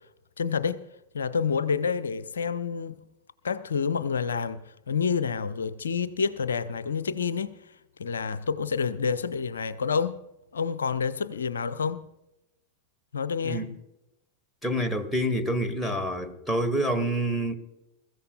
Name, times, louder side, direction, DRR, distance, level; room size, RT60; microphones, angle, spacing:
voice 1, 0.4-0.8 1.1-2.9 3.4-10.2 10.5-12.0 13.1-13.7, left 6 dB, 70° left, 0.6 m, -28 dB
voice 2, 14.6-17.5, right 1 dB, 5° left, 1.5 m, -27 dB
22.5 x 14.5 x 2.3 m
figure-of-eight pair, 90°, 0 cm